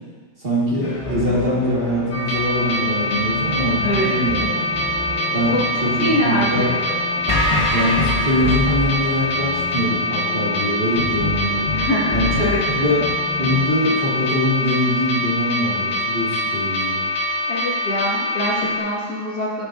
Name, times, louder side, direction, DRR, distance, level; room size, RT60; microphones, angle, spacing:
voice 1, 0.4-4.5 5.3-6.7 7.7-11.6 12.1-12.5 12.7-13.0 13.4-17.1, equal, 35° right, -7 dB, 1.7 m, -23 dB
sound 1, 0.8-13.7, left 1 dB, 25° left, 0.7 m, -27 dB
sound 2, 2.1-18.8, left 1 dB, 90° left, 1.9 m, -24 dB
voice 2, 3.8-4.1 5.5-5.6 6.0-6.8 11.7-12.6 17.5-19.7, equal, 65° left, -7 dB, 2.2 m, -24 dB
12.0 x 6.3 x 2.6 m, 1.5 s
omnidirectional pair, 1.9 m